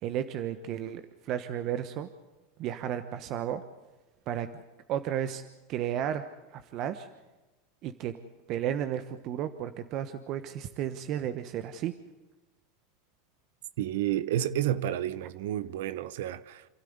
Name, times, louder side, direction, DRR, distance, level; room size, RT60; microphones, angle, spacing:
voice 1, 0.0-2.1 2.6-3.6 4.3-4.5 4.9-5.4 5.7-6.3 6.5-7.1 7.8-8.2 8.5-11.9, right 10 dB, 50° right, 1.1 m, -33 dB
voice 2, 13.8-16.7, right 12 dB, 75° right, 0.9 m, -30 dB
27.5 x 13.0 x 9.6 m
hypercardioid pair, 105°, 0 cm